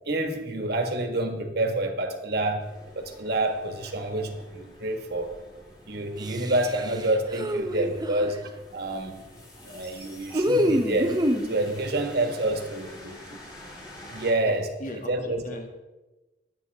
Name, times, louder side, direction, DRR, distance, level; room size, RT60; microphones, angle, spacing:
voice 1, 0.0-2.7 2.9-5.4 5.9-8.4 8.7-9.2 9.6-11.2 11.5-13.4 14.1-14.7 15.1-15.4, right 2 dB, 60° right, 5 dB, 1.7 m, -28 dB
sound 1, 2.6-14.3, left 1 dB, 25° left, 3.8 m, -48 dB
sound 2, 6.2-8.4 10.3-11.5, equal, 20° right, 0.8 m, -26 dB
voice 2, 12.5-13.2 14.5-15.7, left 1 dB, 45° left, 2 dB, 2.1 m, -42 dB
22.5 x 9.1 x 3.5 m, 1.1 s
head